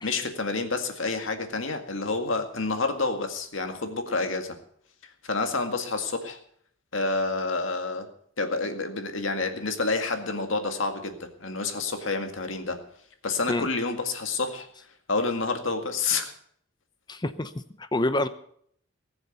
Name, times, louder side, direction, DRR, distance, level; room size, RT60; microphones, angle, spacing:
voice 1, 0.0-4.6 5.2-6.4 6.9-8.1 8.4-12.8 13.2-14.7 15.1-16.3, left 3 dB, 75° left, 6 dB, 2.0 m, -28 dB
voice 2, 17.1-18.3, left 1 dB, 20° left, 12 dB, 0.7 m, -28 dB
19.5 x 7.0 x 8.0 m, 0.66 s
head